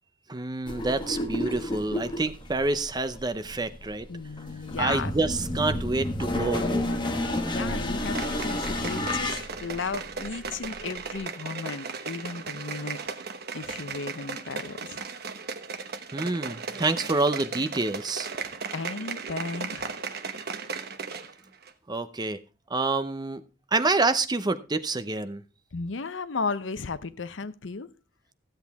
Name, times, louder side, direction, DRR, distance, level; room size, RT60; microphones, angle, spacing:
voice 1, 0.3-4.1 4.8-6.9 16.1-18.3 21.9-22.4 22.7-23.4 23.7-25.4, right 3 dB, 20° right, 0.7 m, -27 dB
sound 1, 0.7-11.2, left 1 dB, 25° left, 1.2 m, -31 dB
voice 2, 4.1-5.1 6.9-13.0 13.5-15.0 18.5-19.9 25.7-27.9, left 4 dB, 80° left, 0.7 m, -35 dB
sound 2, 8.0-21.3 21.6-21.7, right 5 dB, 55° right, 1.0 m, -36 dB
15.0 x 8.0 x 3.5 m
head